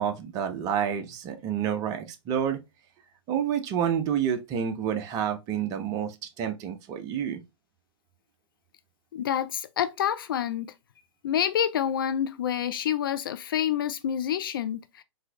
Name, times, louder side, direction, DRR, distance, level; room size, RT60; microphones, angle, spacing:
voice 1, 0.0-2.6 3.3-7.4, right 8 dB, 25° right, 0.6 m, -29 dB
voice 2, 9.1-10.7 11.2-15.0, left 9 dB, 45° left, 0.4 m, -28 dB
3.8 x 2.7 x 2.7 m
figure-of-eight pair, 115°, 16 cm